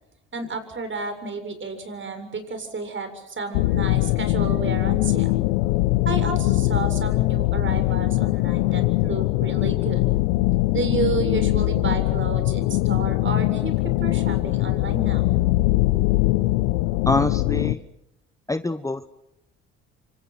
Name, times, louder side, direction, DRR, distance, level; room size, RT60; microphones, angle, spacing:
voice 1, 0.3-5.4 6.1-10.0 10.7-15.2, right 4 dB, 40° right, 8 dB, 7.3 m, -31 dB
sound 1, 3.5-17.7, left 19 dB, 80° left, 0.9 m, -22 dB
voice 2, 17.1-17.8 18.5-19.1, left 2 dB, 10° left, 12 dB, 1.1 m, -24 dB
29.0 x 26.0 x 6.1 m, 0.86 s
hypercardioid pair, 65°, 31 cm